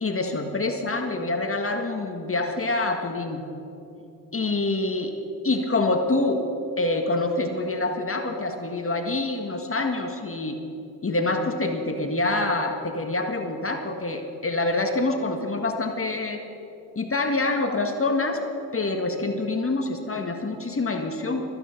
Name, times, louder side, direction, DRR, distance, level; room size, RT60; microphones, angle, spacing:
voice 1, 0.0-3.4 4.3-5.1 5.4-6.5 6.8-10.6 11.0-16.4 16.9-18.4 18.7-21.5, left 2 dB, 30° left, 4 dB, 1.7 m, -26 dB
23.5 x 9.3 x 5.9 m, 2.8 s
hypercardioid pair, 50°, 44 cm